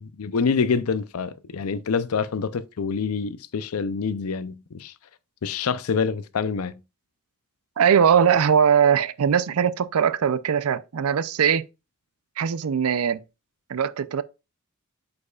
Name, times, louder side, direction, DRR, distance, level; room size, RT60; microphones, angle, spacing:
voice 1, 0.0-4.9 5.4-6.8, left 5 dB, 80° left, 0.5 m, -26 dB
voice 2, 7.8-11.6 12.4-13.2 13.7-14.2, right 7 dB, 85° right, 0.5 m, -20 dB
8.1 x 5.2 x 2.3 m
head